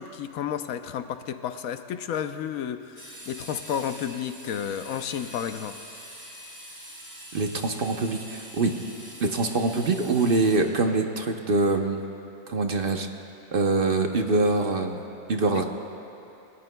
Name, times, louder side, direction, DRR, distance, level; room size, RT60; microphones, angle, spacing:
voice 1, 0.0-5.8 15.5-15.6, left 9 dB, 90° left, 9 dB, 1.1 m, -32 dB
sound 1, 3.0-10.6, equal, 15° right, 3.7 m, -44 dB
voice 2, 7.3-8.7 9.2-12.0 12.5-13.1 13.5-15.0 15.3-15.6, right 3 dB, 50° right, 4 dB, 0.9 m, -24 dB
27.0 x 20.0 x 2.3 m, 2.8 s
omnidirectional pair, 1.4 m